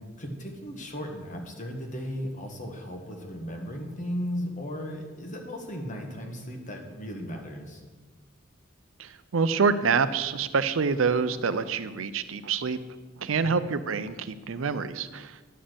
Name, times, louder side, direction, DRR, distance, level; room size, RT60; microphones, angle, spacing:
voice 1, 0.0-7.8 13.4-13.5, equal, 40° left, 2 dB, 1.5 m, -36 dB
voice 2, 9.0-12.8 13.2-15.4, right 5 dB, 80° right, 13 dB, 0.6 m, -26 dB
11.0 x 4.2 x 7.9 m, 1.3 s
head